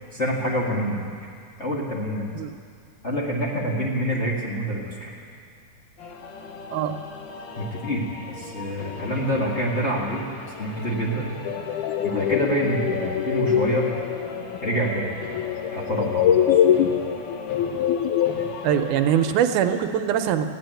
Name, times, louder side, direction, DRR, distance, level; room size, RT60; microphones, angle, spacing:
voice 1, 0.1-1.3 1.6-2.2 3.0-5.2 7.6-10.3 10.6-11.4 12.0-13.9 14.6-15.1 15.7-16.4, equal, 30° left, -4 dB, 1.4 m, -26 dB
sound 1, 6.0-19.3, left 3 dB, 60° left, 1.2 m, -39 dB
sound 2, 11.4-18.9, left 9 dB, 85° left, 2.2 m, -24 dB
voice 2, 18.6-20.5, right 9 dB, 85° right, 7 dB, 2.2 m, -22 dB
15.5 x 9.3 x 9.1 m, 2.4 s
omnidirectional pair, 3.5 m